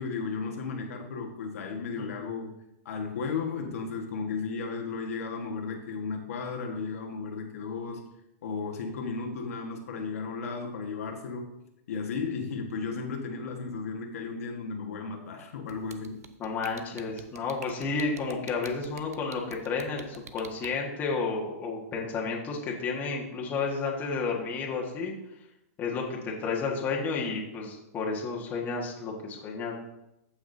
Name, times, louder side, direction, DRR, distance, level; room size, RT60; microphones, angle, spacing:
voice 1, 0.0-2.5 2.8-8.1 8.4-11.6 11.9-16.2, left 5 dB, 70° left, 2 dB, 1.4 m, -34 dB
voice 2, 2.0-2.4 16.4-25.1 25.8-29.7, left 4 dB, 20° left, -2 dB, 1.5 m, -32 dB
sound 1, 15.7-20.7, right 8 dB, 80° right, 0.8 m, -45 dB
14.5 x 6.0 x 2.7 m, 0.88 s
hypercardioid pair, 150°, 8 cm